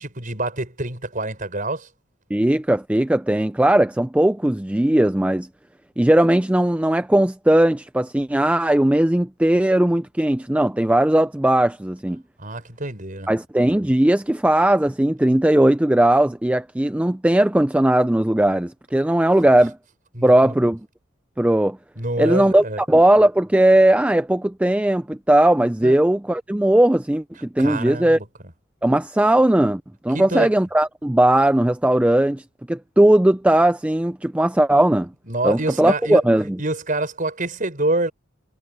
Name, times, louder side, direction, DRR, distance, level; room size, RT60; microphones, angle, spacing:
voice 1, 0.0-1.9 12.4-13.3 20.1-20.5 22.0-22.8 25.8-25.9 27.6-28.2 30.1-30.5 35.3-36.2 36.6-38.1, right 2 dB, 40° right, 5.7 m, -26 dB
voice 2, 2.3-5.5 6.0-12.2 13.3-19.8 20.2-20.8 21.4-21.8 22.2-28.2 28.8-35.1 35.4-36.6, right 1 dB, 5° right, 0.4 m, -18 dB
head